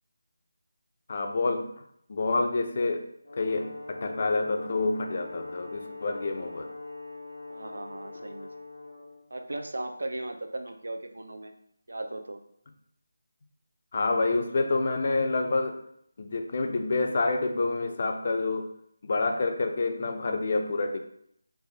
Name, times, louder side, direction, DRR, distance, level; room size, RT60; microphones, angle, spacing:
voice 1, 1.1-1.7 2.1-3.1 3.3-6.7 13.9-15.8 16.2-18.7 19.0-21.0, left 3 dB, 35° left, 6 dB, 0.4 m, -28 dB
Brass instrument, 3.2-9.2, left 3 dB, 90° left, 0.7 m, -42 dB
voice 2, 7.5-8.5 9.3-11.5 11.9-12.4, right 2 dB, 85° right, 6 dB, 0.5 m, -37 dB
4.6 x 2.4 x 3.9 m, 0.71 s
figure-of-eight pair, 175°, 0 cm